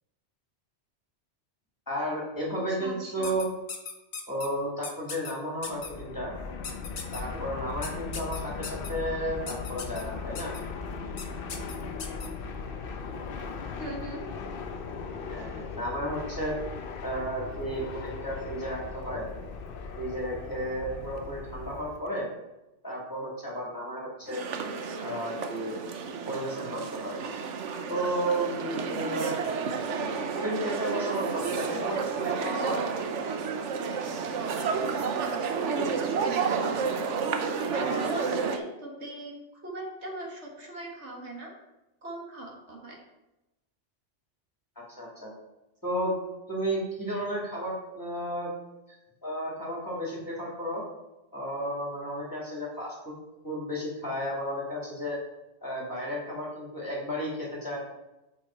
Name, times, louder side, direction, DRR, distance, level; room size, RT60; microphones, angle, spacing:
voice 1, 1.9-3.5 4.3-6.3 7.1-10.5 15.3-16.5 17.0-19.2 20.0-22.3 22.8-24.4 25.0-25.8 26.3-27.2 27.9-29.4 29.9-30.1 30.3-32.9 37.8-38.1 44.8-45.3 45.8-46.1 46.5-48.5 49.2-50.8 51.3-53.1 53.4-55.2 55.6-57.8, equal, 15° left, -4 dB, 2.2 m, -33 dB
voice 2, 2.8-3.3 13.8-14.2 37.6-41.5 42.0-43.0, right 1 dB, 70° right, -1 dB, 1.9 m, -39 dB
sound 1, 3.2-4.5 4.8-5.3 5.6-5.9 6.6-7.2 7.8-8.9 9.5-10.0 10.3-10.6 11.2-11.3 11.5-12.3, left 6 dB, 75° left, 1.3 m, -38 dB
Fixed-wing aircraft airplane, 5.6-22.0, left 5 dB, 55° left, 0.9 m, -38 dB
sound 2, 24.3-38.6, right 5 dB, 85° right, 1.1 m, -31 dB
8.3 x 5.6 x 4.4 m, 0.98 s
omnidirectional pair, 1.2 m